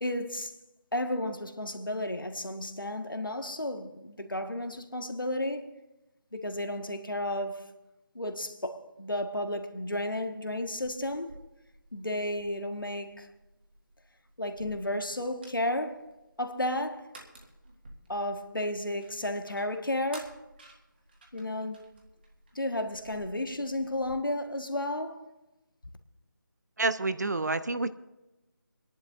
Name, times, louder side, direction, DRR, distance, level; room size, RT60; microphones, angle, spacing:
voice 1, 0.0-0.5 0.9-5.7 6.3-7.7 8.1-11.3 11.9-13.3 14.4-16.0 16.4-17.1 18.1-20.4 21.3-21.9 22.5-25.3, left 1 dB, 80° left, 1.5 m, -33 dB
sound 1, 10.8-24.1, right 1 dB, 30° right, 1.8 m, -54 dB
voice 2, 26.8-27.9, right 3 dB, 55° right, 0.7 m, -28 dB
28.0 x 11.0 x 2.6 m
figure-of-eight pair, 160°, 11 cm